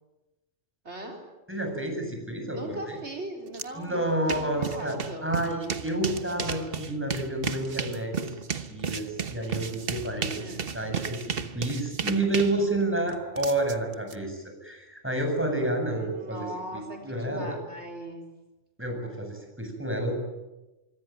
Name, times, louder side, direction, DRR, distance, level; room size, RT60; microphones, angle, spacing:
voice 1, 0.8-1.2 2.5-5.4 10.3-10.8 15.9-18.2, right 1 dB, 70° right, 2 dB, 4.1 m, -39 dB
voice 2, 1.5-3.0 3.8-5.0 5.2-8.3 8.6-10.3 10.7-11.3 11.5-16.5 16.7-17.6 18.8-20.2, right 1 dB, 10° right, 3 dB, 7.7 m, -29 dB
sound 1, 3.5-3.7 4.0-14.1, right 6 dB, 55° right, 1.4 m, -34 dB
25.5 x 24.5 x 9.3 m, 1.1 s
omnidirectional pair, 1.2 m